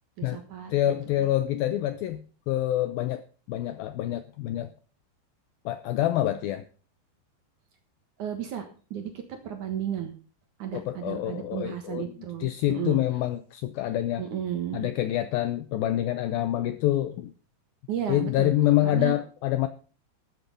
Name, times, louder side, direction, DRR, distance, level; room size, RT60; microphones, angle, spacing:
voice 1, 0.2-0.7 8.2-10.1 10.6-13.0 14.2-14.9 17.9-18.5 18.8-19.2, right 9 dB, 60° right, 6 dB, 2.3 m, -33 dB
voice 2, 0.7-3.2 3.5-4.7 5.7-6.6 10.7-12.1 12.4-14.2 14.7-17.3 18.1-19.7, left 13 dB, 85° left, 11 dB, 2.1 m, -26 dB
13.5 x 8.5 x 5.3 m, 0.38 s
omnidirectional pair, 5.1 m